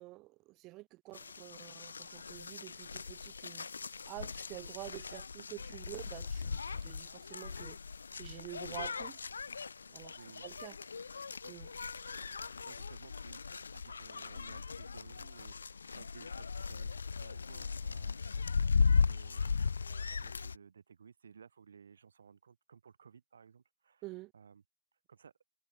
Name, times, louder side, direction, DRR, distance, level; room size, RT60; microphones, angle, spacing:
voice 1, 0.0-3.7 4.1-7.8 8.2-9.2 9.9-10.1 10.4-10.8 11.5-11.7 24.0-24.3, right 20 dB, 40° right, 1.7 m, -48 dB
sound 1, 1.1-20.6, left 5 dB, 85° left, 0.3 m, -37 dB
voice 2, 12.7-13.4 13.7-18.4 18.7-19.6 19.9-24.0 24.3-24.6 25.1-25.3, right 6 dB, 80° right, 5.4 m, -58 dB
hypercardioid pair, 110°, 0 cm